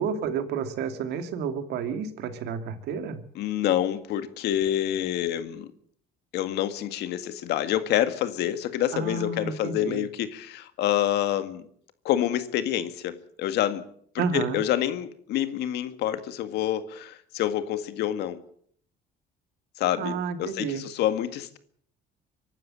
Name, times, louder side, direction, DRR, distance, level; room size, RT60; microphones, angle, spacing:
voice 1, 0.0-3.2 8.9-10.0 14.2-14.6 20.0-20.8, right 6 dB, 80° right, 8 dB, 2.5 m, -30 dB
voice 2, 3.4-5.7 6.3-11.6 12.0-13.8 14.1-18.4 19.8-21.6, left 11 dB, 80° left, 10 dB, 1.9 m, -27 dB
24.5 x 12.0 x 8.8 m, 0.63 s
cardioid pair, 110°, 17 cm